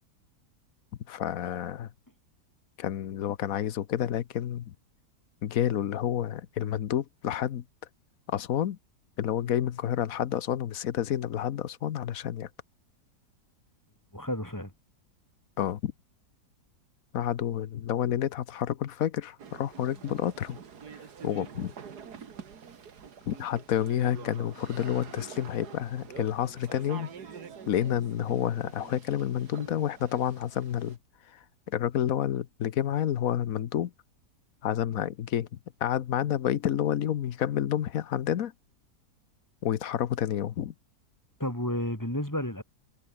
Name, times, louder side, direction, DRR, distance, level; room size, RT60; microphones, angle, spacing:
voice 1, 1.1-1.9 2.8-4.7 5.4-7.6 8.3-8.8 9.2-12.5 15.6-15.9 17.1-20.6 21.2-21.7 23.3-27.1 27.7-31.0 31.3-33.9 34.6-35.5 35.8-38.5 39.6-40.7, left 10 dB, 60° left, 1.2 m, -29 dB
voice 2, 14.1-14.7 41.4-42.6, left 1 dB, 10° left, 5.9 m, -31 dB
sound 1, 19.4-31.0, right 7 dB, 70° right, 2.3 m, -46 dB
omnidirectional pair, 1.8 m